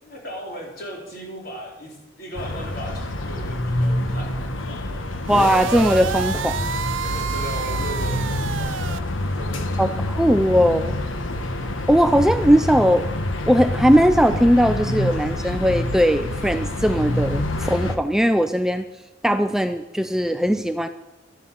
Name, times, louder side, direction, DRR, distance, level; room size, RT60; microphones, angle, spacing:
voice 1, 0.0-5.0 7.0-9.8, equal, 50° left, -1 dB, 4.3 m, -37 dB
sound 1, 2.4-18.0, left 1 dB, 80° left, 1.3 m, -27 dB
sound 2, 5.2-9.0, right 7 dB, 70° right, 0.6 m, -29 dB
voice 2, 5.3-6.7 9.8-11.0 11.9-13.1 13.5-18.9 19.2-20.9, equal, 5° right, 9 dB, 0.4 m, -19 dB
12.0 x 10.0 x 7.6 m, 0.99 s
head